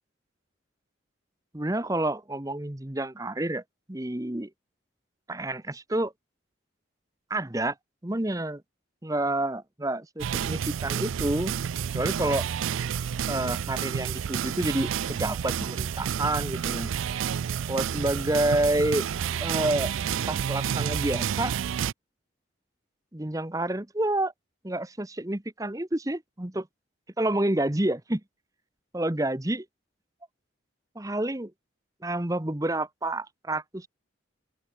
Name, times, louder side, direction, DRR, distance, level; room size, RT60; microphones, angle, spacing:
voice 1, 1.5-3.6 3.9-4.5 5.3-6.1 7.3-7.7 8.0-8.6 9.0-11.5 11.9-12.4 13.3-16.9 17.7-19.1 19.4-19.9 20.3-21.5 23.1-24.3 24.6-26.7 27.2-28.2 28.9-29.6 30.9-31.5 32.0-33.9, right 1 dB, 15° right, 0.9 m, -28 dB
sound 1, 10.2-21.9, right 8 dB, 90° right, 0.4 m, -30 dB
open air
head